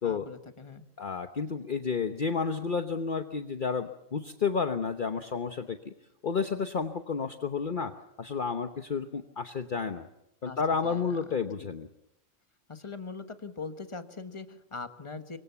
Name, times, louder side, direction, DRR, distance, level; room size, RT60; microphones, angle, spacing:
voice 1, 0.0-0.8 10.4-11.2 11.6-11.7 12.7-15.4, left 4 dB, 25° left, 8 dB, 1.4 m, -41 dB
voice 2, 1.0-5.9 6.2-10.1 10.4-11.9, left 5 dB, 45° left, 7 dB, 1.1 m, -31 dB
25.5 x 23.0 x 7.0 m, 0.84 s
omnidirectional pair, 1.2 m